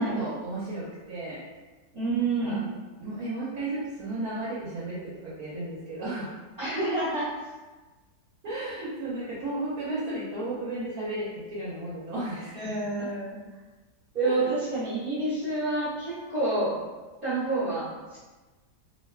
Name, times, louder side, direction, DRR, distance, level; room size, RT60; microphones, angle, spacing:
voice 1, 0.0-1.4 2.2-2.6 3.0-6.4 8.4-13.1 14.2-14.6, right 2 dB, 70° right, -7 dB, 1.1 m, -34 dB
voice 2, 1.9-2.6 6.6-7.3 12.5-13.4 14.1-16.8 17.2-18.2, right 2 dB, 45° right, -11 dB, 0.8 m, -28 dB
2.8 x 2.1 x 2.2 m, 1.2 s
omnidirectional pair, 1.8 m